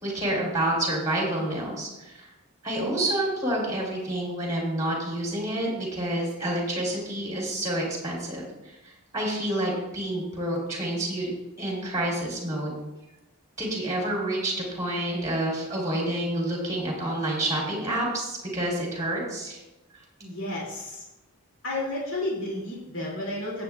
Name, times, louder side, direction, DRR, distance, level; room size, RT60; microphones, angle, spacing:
voice 1, 0.0-2.3 2.6-8.8 9.1-11.3 11.6-12.7 13.6-19.6, right 1 dB, 15° right, -3 dB, 3.4 m, -28 dB
voice 2, 20.2-21.0 21.6-23.6, left 1 dB, 60° left, -4 dB, 2.7 m, -32 dB
15.5 x 8.4 x 2.4 m, 0.99 s
head